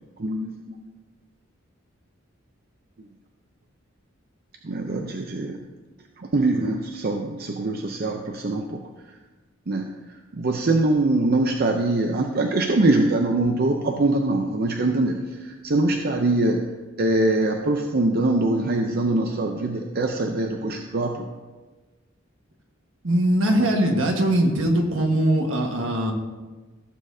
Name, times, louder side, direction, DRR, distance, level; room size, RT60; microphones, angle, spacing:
voice 1, 0.2-0.8 4.6-5.6 6.2-8.8 9.7-9.9 10.3-16.6 17.0-21.3, right 2 dB, 50° right, 3 dB, 0.6 m, -23 dB
voice 2, 23.0-26.1, right 1 dB, 75° right, 2 dB, 1.5 m, -21 dB
15.5 x 7.3 x 2.7 m, 1.3 s
head